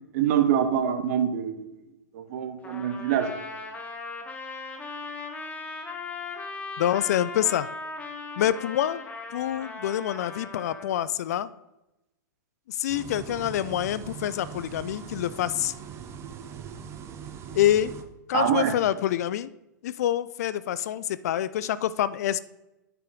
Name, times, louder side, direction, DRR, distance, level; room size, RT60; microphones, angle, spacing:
voice 1, 0.1-1.7 2.1-3.3 18.3-18.7, right 9 dB, 50° right, 9 dB, 0.9 m, -25 dB
Trumpet, 2.6-11.0, left 3 dB, 15° left, 1.2 m, -38 dB
voice 2, 6.8-7.7 8.4-9.0 9.3-11.5 12.7-15.7 17.5-17.9 18.3-19.5 19.8-22.4, left 11 dB, 55° left, 16 dB, 0.4 m, -26 dB
sound 1, 12.9-18.0, right 7 dB, 25° right, 0.7 m, -41 dB
9.5 x 5.6 x 3.8 m, 0.94 s
figure-of-eight pair, 105°, 10 cm